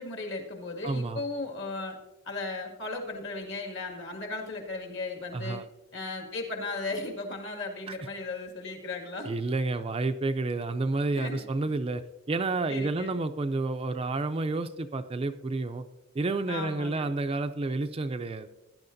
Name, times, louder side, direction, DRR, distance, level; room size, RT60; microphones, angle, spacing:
voice 1, 0.0-2.0 2.3-5.6 5.9-9.3 11.1-11.5 12.7-13.2 16.5-17.1, left 3 dB, 55° left, 2 dB, 2.0 m, -36 dB
voice 2, 0.8-1.2 5.3-5.6 9.2-12.0 12.3-15.8 16.2-18.5, right 3 dB, 25° right, 8 dB, 0.4 m, -30 dB
16.5 x 10.5 x 2.6 m, 1.0 s
head